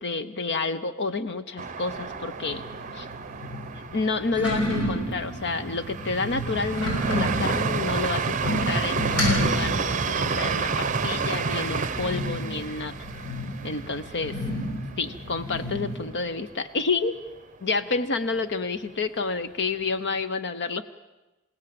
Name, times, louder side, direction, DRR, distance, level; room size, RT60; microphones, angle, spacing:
voice 1, 0.0-2.6 2.9-3.1 3.9-12.9 13.6-14.4 15.0-17.1 17.6-20.8, left 3 dB, 55° left, 11 dB, 0.8 m, -29 dB
sound 1, 1.6-15.3 15.6-15.7 16.1-16.7, right 5 dB, 35° right, 0.7 m, -30 dB
sound 2, 1.8-16.1, left 1 dB, 70° left, 7.9 m, -32 dB
28.5 x 17.5 x 7.7 m, 1.1 s
head